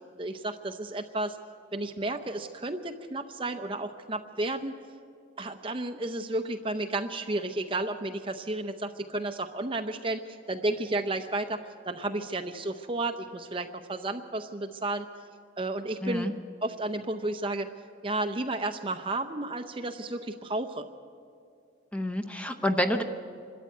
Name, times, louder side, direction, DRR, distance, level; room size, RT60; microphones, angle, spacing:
voice 1, 0.2-1.4 1.7-4.7 5.4-11.6 11.9-15.1 15.6-16.3 16.6-17.7 18.0-20.9, right 2 dB, 25° right, 7 dB, 0.7 m, -32 dB
voice 2, 16.0-16.3 21.9-23.0, left 1 dB, 5° left, 6 dB, 0.9 m, -28 dB
25.5 x 13.0 x 9.3 m, 2.4 s
head